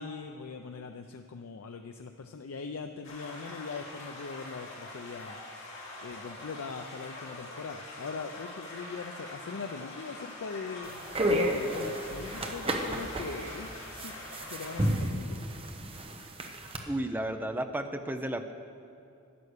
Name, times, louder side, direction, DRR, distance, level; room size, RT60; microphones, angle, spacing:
voice 1, 0.0-5.4 6.0-11.0 11.3-14.1 14.5-15.4, left 4 dB, 90° left, 6 dB, 0.5 m, -41 dB
sound 1, 3.0-14.9, left 2 dB, 65° left, 2.8 m, -44 dB
sound 2, 10.8-16.8, equal, 25° right, 0.9 m, -32 dB
voice 2, 16.9-18.5, right 1 dB, 10° right, 8 dB, 0.5 m, -33 dB
11.0 x 8.5 x 6.5 m, 2.7 s
head